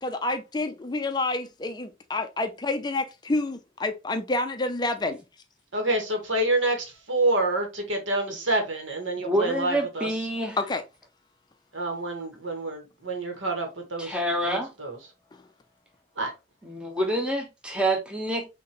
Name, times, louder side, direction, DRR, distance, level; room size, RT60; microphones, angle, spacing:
voice 1, 0.0-5.2 10.6-10.8, left 2 dB, 20° left, 0.4 m, -28 dB
voice 2, 5.7-7.6 7.9-10.1 11.7-14.2 14.5-15.0 16.2-16.3, right 2 dB, 85° right, 1.6 m, -27 dB
voice 3, 9.2-10.6 14.0-14.7 16.6-18.5, right 1 dB, 5° right, 1.0 m, -27 dB
5.9 x 2.9 x 3.0 m
head